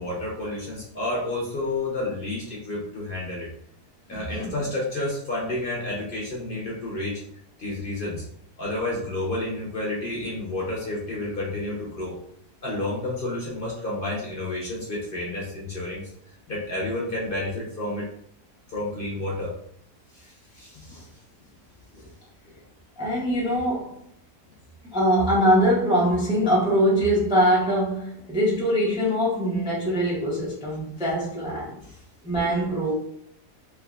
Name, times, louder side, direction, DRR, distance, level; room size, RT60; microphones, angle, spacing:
voice 1, 0.0-3.5 4.1-7.2 7.6-8.2 8.6-12.2 12.6-16.1 16.5-18.1 18.7-19.6 20.1-21.2 21.9-22.1 22.5-22.6 31.8-32.0, left 2 dB, 45° left, -4 dB, 0.7 m, -30 dB
voice 2, 4.1-4.5 23.0-23.9 24.9-31.7 32.2-32.9, equal, 5° right, -5 dB, 0.3 m, -23 dB
3.5 x 3.1 x 2.4 m, 0.68 s
omnidirectional pair, 1.7 m